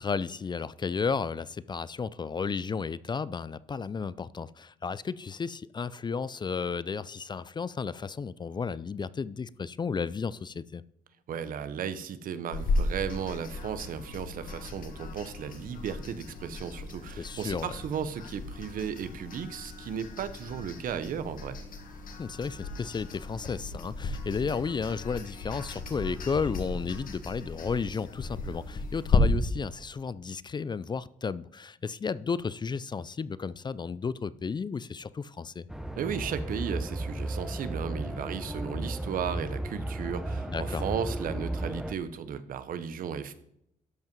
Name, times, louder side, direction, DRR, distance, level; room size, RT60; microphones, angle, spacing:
voice 1, 0.0-10.8 17.2-17.8 22.2-35.7 40.5-40.9, left 5 dB, 30° left, 0.4 m, -33 dB
voice 2, 11.3-21.6 36.0-43.3, right 7 dB, 75° right, 0.9 m, -35 dB
sound 1, 12.5-29.2, left 4 dB, 70° left, 1.7 m, -35 dB
sound 2, 35.7-41.9, right 1 dB, 5° right, 1.0 m, -34 dB
12.5 x 5.4 x 5.4 m
cardioid pair, 80°, 15 cm